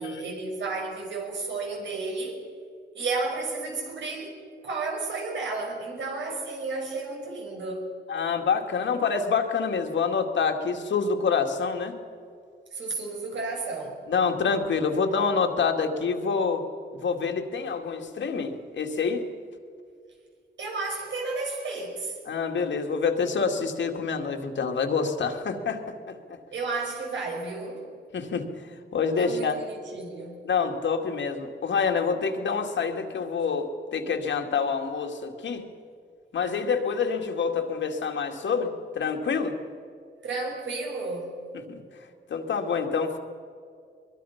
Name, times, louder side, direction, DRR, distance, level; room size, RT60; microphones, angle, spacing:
voice 1, 0.0-2.4 2.9-4.4 4.6-7.9 12.7-14.0 20.6-22.2 26.5-27.9 29.1-30.5 40.2-41.4, right 3 dB, 80° right, 5.7 m, -32 dB
voice 2, 8.1-12.0 14.1-16.6 16.9-19.2 22.3-26.4 28.1-28.5 28.9-29.6 30.4-35.7 36.3-39.5 41.7-41.8 42.3-43.2, left 5 dB, 80° left, 2.2 m, -27 dB
23.5 x 23.0 x 5.9 m
wide cardioid pair, 140°, 19 cm